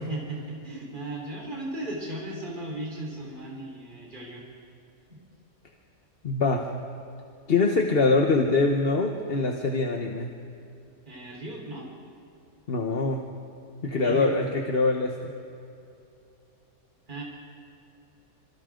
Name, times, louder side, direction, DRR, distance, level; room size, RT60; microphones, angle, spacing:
voice 1, 0.0-4.4 11.0-11.9 14.0-14.3 17.1-17.2, right 1 dB, 35° right, -3 dB, 4.4 m, -36 dB
voice 2, 6.2-6.7 7.5-10.3 12.7-13.3 13.8-15.3, left 3 dB, 45° left, 2 dB, 1.3 m, -24 dB
27.0 x 27.0 x 3.8 m, 2.7 s
omnidirectional pair, 1.5 m